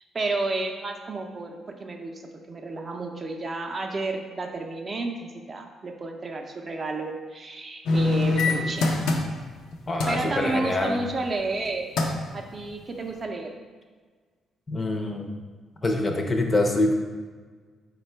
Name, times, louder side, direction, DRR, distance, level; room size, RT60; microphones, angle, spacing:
voice 1, 0.1-2.2 2.5-9.2 10.1-11.8 12.3-13.5, right 3 dB, 35° right, 3 dB, 0.4 m, -31 dB
sound 1, 7.9-9.6 10.0-10.3 11.5-11.7 12.0-12.3 12.8-12.9, left 3 dB, 80° left, 0.5 m, -24 dB
voice 2, 9.9-11.0 14.7-15.3 15.8-16.9, left 2 dB, 25° left, 3 dB, 0.5 m, -25 dB
4.2 x 2.2 x 4.3 m, 1.5 s
cardioid pair, 90°, 0 cm